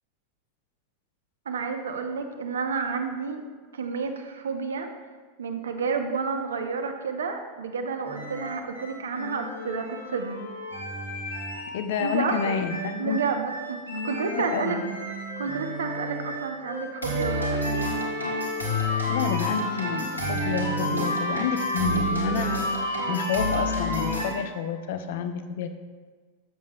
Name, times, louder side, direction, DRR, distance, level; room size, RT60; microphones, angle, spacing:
voice 1, 1.5-3.4 3.7-4.9 5.4-10.5 12.0-12.5 13.0-14.8 15.4-17.6, right 5 dB, 75° right, 6 dB, 0.8 m, -30 dB
sound 1, 8.0-24.3, equal, 90° left, 1.6 m, -30 dB
voice 2, 11.7-13.2 14.5-14.8 19.1-22.6 23.1-25.7, left 7 dB, 60° left, 9 dB, 0.7 m, -29 dB
12.5 x 7.3 x 2.3 m, 1.4 s
figure-of-eight pair, 90°, 0 cm